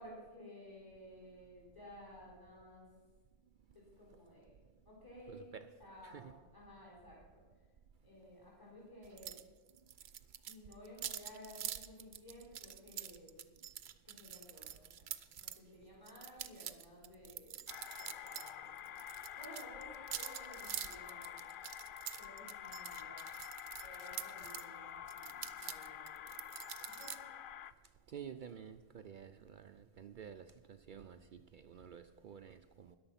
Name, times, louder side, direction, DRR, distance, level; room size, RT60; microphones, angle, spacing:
voice 1, 0.0-2.9 3.7-4.6 4.9-7.4 8.0-9.4 10.4-13.4 14.0-15.1 15.4-17.6 18.0-18.9 19.3-19.9 20.1-21.5 22.2-23.1 23.8-26.5 27.0-27.4, equal, 20° left, -5 dB, 3.8 m, -55 dB
voice 2, 5.3-5.7 6.0-6.3 28.1-33.0, right 7 dB, 60° right, 9 dB, 0.6 m, -51 dB
sound 1, 9.2-9.4 9.7-15.6 16.1-18.5 18.8-24.7 25.1-27.2, right 10 dB, 90° right, 0.9 m, -46 dB
sound 2, 17.7-27.7, left 10 dB, 60° left, 0.7 m, -48 dB
14.0 x 10.5 x 5.7 m, 1.4 s
omnidirectional pair, 1.1 m